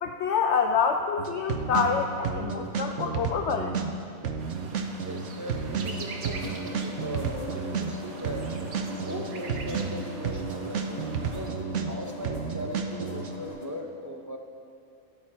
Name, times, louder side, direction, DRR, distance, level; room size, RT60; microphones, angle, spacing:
voice 1, 0.0-3.8, left 6 dB, 65° left, 4 dB, 0.8 m, -26 dB
sound 1, 1.2-13.3, right 6 dB, 65° right, 1.1 m, -31 dB
sound 2, 4.4-11.5, right 3 dB, 80° right, 1.5 m, -44 dB
voice 2, 5.1-8.5 9.0-14.4, equal, 20° right, 2 dB, 0.5 m, -38 dB
sound 3, 5.8-13.7, left 1 dB, 30° left, 1.4 m, -42 dB
13.0 x 9.6 x 4.4 m, 2.6 s
omnidirectional pair, 1.5 m